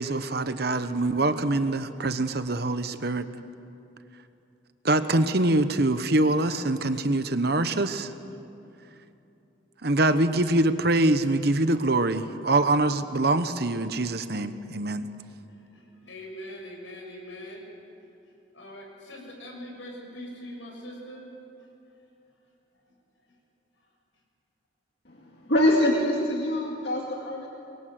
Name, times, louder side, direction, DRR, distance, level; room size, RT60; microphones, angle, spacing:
voice 1, 0.0-3.2 4.8-8.1 9.8-15.1, right 2 dB, 55° right, 10 dB, 1.1 m, -24 dB
voice 2, 15.5-17.8 18.0-21.3 21.6-21.7 22.8-23.0 23.3-23.4 23.8-23.9, equal, 80° left, 0 dB, 7.0 m, -43 dB
voice 3, 25.1-27.5, left 1 dB, 60° left, -1 dB, 2.2 m, -24 dB
25.0 x 22.0 x 7.8 m, 2.8 s
head